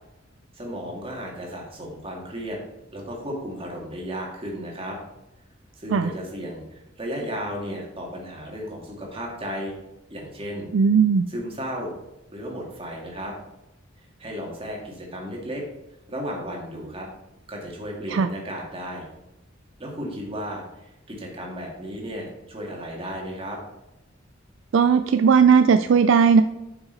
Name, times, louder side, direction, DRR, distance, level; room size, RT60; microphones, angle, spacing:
voice 1, 0.5-2.6 2.9-5.0 5.8-9.7 10.1-10.7 11.3-11.9 12.3-13.3 14.2-15.6 16.1-17.1 17.5-19.1 19.8-23.6, equal, 30° right, -1 dB, 2.2 m, -34 dB
voice 2, 10.7-11.2 18.1-18.3 24.7-26.4, right 6 dB, 65° right, 10 dB, 0.4 m, -17 dB
10.5 x 5.8 x 4.0 m, 0.92 s
head